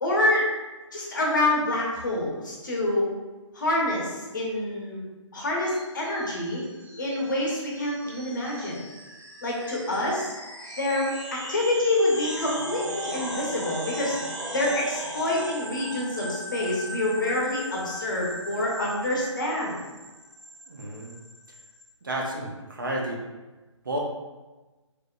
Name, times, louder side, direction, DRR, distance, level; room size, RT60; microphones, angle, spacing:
voice 1, 0.0-0.4 0.9-3.1 3.5-5.0 5.3-6.6 7.0-8.8 9.4-10.3 10.8-14.2 14.5-19.8, left 1 dB, 40° left, -3 dB, 0.6 m, -27 dB
sound 1, 5.6-21.8, equal, 85° right, 1.3 m, -38 dB
voice 2, 20.7-21.2 22.0-23.2 23.8-24.0, right 1 dB, 45° right, -1 dB, 0.4 m, -31 dB
2.8 x 2.0 x 2.2 m, 1.2 s
figure-of-eight pair, 145°, 16 cm